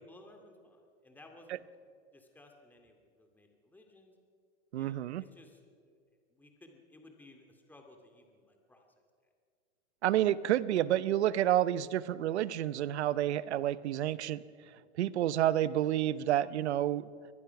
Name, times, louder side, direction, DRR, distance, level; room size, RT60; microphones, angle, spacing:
voice 1, 0.0-1.6 2.1-4.1 4.7-5.6 6.3-8.9, left 2 dB, 5° left, 3 dB, 2.5 m, -58 dB
voice 2, 4.7-5.2 10.0-14.4 15.0-17.1, right 12 dB, 90° right, 17 dB, 0.8 m, -29 dB
23.5 x 19.5 x 5.9 m, 2.2 s
supercardioid pair, 145°, 32 cm